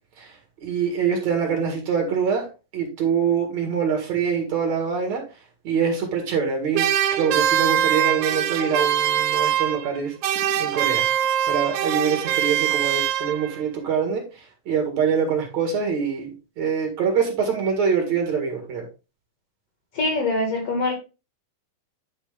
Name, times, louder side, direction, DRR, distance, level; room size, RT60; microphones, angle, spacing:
voice 1, 0.6-2.5 2.7-5.2 5.6-6.8 7.2-10.1 10.6-11.0 11.5-14.2 14.7-18.9, right 6 dB, 55° right, 2 dB, 2.9 m, -24 dB
sound 1, 6.7-10.0 10.2-13.6, right 10 dB, 75° right, 1.8 m, -23 dB
voice 2, 19.9-20.9, left 2 dB, 50° left, 3 dB, 2.4 m, -23 dB
10.5 x 4.8 x 3.5 m, 0.30 s
omnidirectional pair, 4.0 m